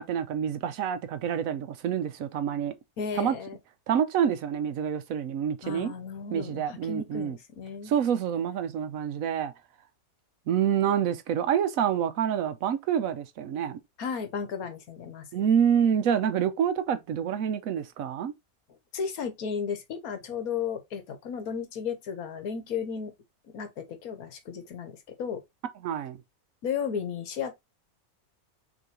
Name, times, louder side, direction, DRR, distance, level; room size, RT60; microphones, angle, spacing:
voice 1, 0.0-2.7 3.2-3.4 3.9-5.9 6.3-7.4 7.9-9.5 10.5-13.8 15.3-18.3 25.8-26.2, right 8 dB, 70° right, 1.0 m, -27 dB
voice 2, 3.0-3.6 5.6-7.9 14.0-15.3 18.9-23.1 23.5-25.4 26.6-27.5, left 6 dB, 75° left, 1.4 m, -34 dB
6.2 x 3.1 x 2.7 m
omnidirectional pair, 1.6 m